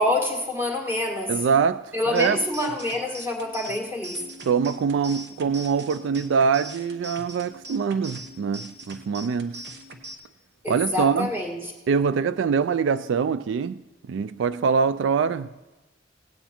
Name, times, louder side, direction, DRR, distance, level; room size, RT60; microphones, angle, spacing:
voice 1, 0.0-1.4 1.9-4.2 10.6-11.7, left 1 dB, 10° right, 1.8 m, -26 dB
voice 2, 1.3-2.4 4.5-9.6 10.7-11.3 11.9-13.8 14.1-15.5, right 6 dB, 80° right, 0.3 m, -24 dB
sound 1, 2.1-10.1, right 1 dB, 60° right, 1.0 m, -42 dB
17.5 x 9.1 x 4.4 m
head